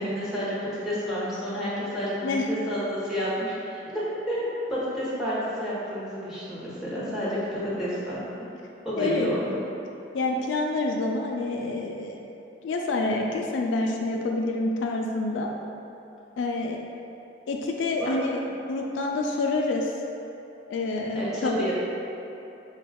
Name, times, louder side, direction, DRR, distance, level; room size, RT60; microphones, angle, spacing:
voice 1, 0.0-8.5 8.8-9.5 18.0-18.1 21.1-21.7, equal, ahead, -10 dB, 0.8 m, -30 dB
voice 2, 9.0-9.3 10.1-12.3 12.6-15.5 16.4-16.8 17.5-18.4 18.7-19.9 20.7-21.7, left 2 dB, 70° left, 1 dB, 0.3 m, -27 dB
4.8 x 2.2 x 3.4 m, 2.9 s
head